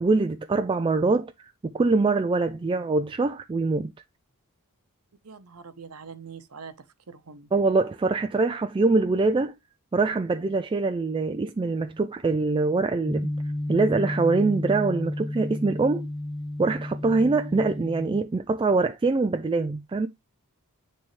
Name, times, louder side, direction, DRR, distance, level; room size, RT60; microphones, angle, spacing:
voice 1, 0.0-1.3 1.6-3.9 7.5-9.5 9.9-13.3 13.7-16.0 16.6-20.1, right 3 dB, 20° right, 0.3 m, -24 dB
voice 2, 5.2-7.5, right 5 dB, 80° right, 0.9 m, -44 dB
sound 1, 13.1-18.2, left 1 dB, 20° left, 0.8 m, -32 dB
9.5 x 3.5 x 3.2 m
head